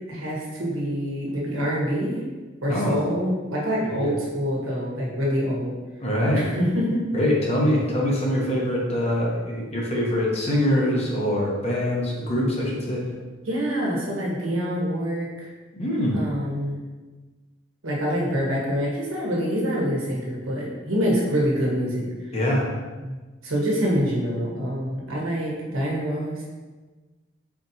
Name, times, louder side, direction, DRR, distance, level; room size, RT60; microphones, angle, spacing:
voice 1, 0.1-2.2 2.6-5.7 6.3-7.0 13.4-15.5 16.1-16.8 17.8-22.1 23.0-23.2 23.4-26.4, equal, 85° right, -4 dB, 1.3 m, -26 dB
voice 2, 6.0-6.4 7.1-13.0 15.8-16.2 22.3-22.7, left 1 dB, 30° left, -3 dB, 0.8 m, -23 dB
4.5 x 4.2 x 2.7 m, 1.3 s
head